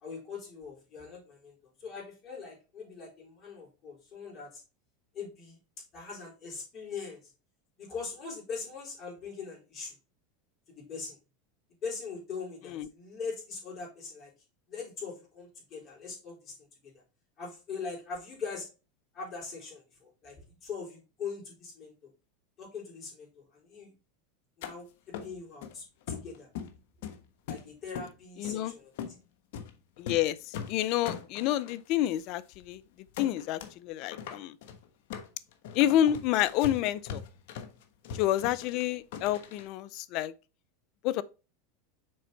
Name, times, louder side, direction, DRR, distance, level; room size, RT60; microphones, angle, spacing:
voice 1, 0.0-4.6 5.1-5.6 5.9-7.2 7.8-9.9 10.7-11.2 11.8-14.3 14.7-16.5 16.8-16.9 17.4-18.7 19.1-22.1 22.6-23.9 24.6-26.5 27.5-28.9, left 5 dB, 40° left, 4.1 m, -41 dB
sound 1, 24.6-24.7 25.1-25.7 26.1-26.8 27.0-28.1 28.4-28.6 29.0-29.2 29.5-29.7 30.0-30.3 30.5-31.8 32.2-32.3 32.5-32.7 33.1-33.7 34.0-39.7, left 7 dB, 70° left, 1.1 m, -40 dB
voice 2, 28.4-28.7 30.0-30.4 30.7-32.8 33.2-34.5 35.7-37.2 38.2-40.3 41.0-41.2, left 12 dB, 55° left, 0.5 m, -28 dB
6.5 x 4.4 x 4.0 m
supercardioid pair, 120°, 0 cm